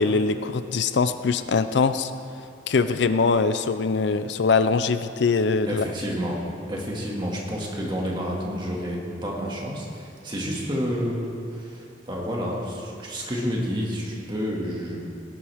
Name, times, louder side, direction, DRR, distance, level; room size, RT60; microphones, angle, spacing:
voice 1, 0.0-2.1 2.7-5.8, left 4 dB, 65° left, 11 dB, 0.5 m, -22 dB
voice 2, 5.7-6.4 6.7-15.0, equal, 25° right, -3 dB, 2.1 m, -29 dB
18.0 x 11.0 x 3.5 m, 2.8 s
head